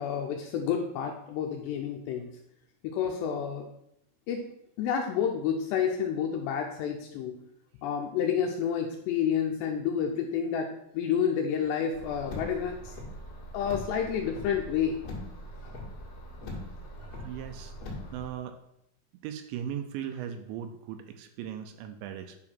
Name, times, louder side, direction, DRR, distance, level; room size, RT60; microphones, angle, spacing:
voice 1, 0.0-2.3 2.8-3.7 4.3-4.4 4.8-7.4 7.8-10.7 10.9-12.9 13.5-15.0, left 8 dB, 80° left, 2 dB, 2.6 m, -29 dB
Car, 11.9-18.3, left 1 dB, 45° left, 2.1 m, -41 dB
voice 2, 17.0-17.7 18.1-18.6 19.2-22.4, right 9 dB, 80° right, 8 dB, 2.8 m, -38 dB
9.8 x 4.8 x 6.0 m, 0.77 s
omnidirectional pair, 5.6 m